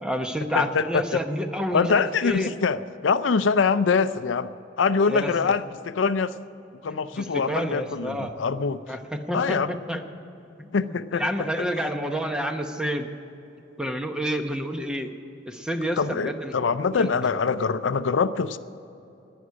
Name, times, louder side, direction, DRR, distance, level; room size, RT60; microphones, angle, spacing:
voice 1, 0.0-2.5 5.1-5.5 6.9-8.4 8.9-10.0 10.6-13.1 13.8-15.1 15.5-16.5 16.9-17.1, equal, 5° right, 5 dB, 0.8 m, -29 dB
voice 2, 0.5-1.0 1.7-4.5 4.8-6.3 6.8-8.8 9.3-9.7 10.7-11.5 16.0-18.6, left 5 dB, 80° left, 13 dB, 0.5 m, -24 dB
11.0 x 9.6 x 9.9 m, 2.9 s
head